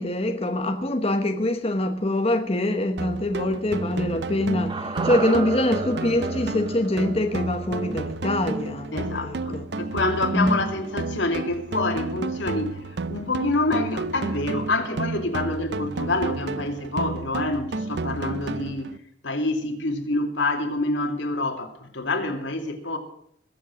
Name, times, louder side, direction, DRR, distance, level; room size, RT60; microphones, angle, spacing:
voice 1, 0.0-9.6 10.3-10.6, left 1 dB, 30° left, 1.0 m, -24 dB
sound 1, 3.0-19.0, right 3 dB, 65° right, 0.6 m, -31 dB
sound 2, 4.7-9.0 9.3-9.4, right 3 dB, 25° right, 1.0 m, -33 dB
voice 2, 8.9-18.9 19.2-23.0, left 2 dB, 80° left, 2.6 m, -27 dB
21.0 x 7.6 x 6.2 m
head